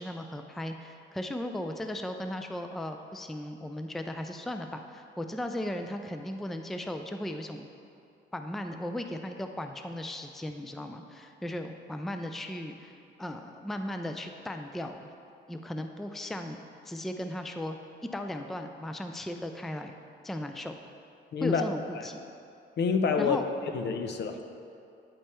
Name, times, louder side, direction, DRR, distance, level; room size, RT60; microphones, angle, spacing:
voice 1, 0.0-7.7 8.3-15.1 15.5-16.6 16.9-17.8 18.1-19.9 20.2-20.7 21.4-22.2 23.2-23.4, left 1 dB, ahead, 6 dB, 0.4 m, -36 dB
voice 2, 21.3-21.6 21.9-22.1 22.8-23.4 23.7-24.5, left 5 dB, 60° left, 6 dB, 0.6 m, -27 dB
8.7 x 5.3 x 4.3 m, 2.6 s
cardioid pair, 90°, 20 cm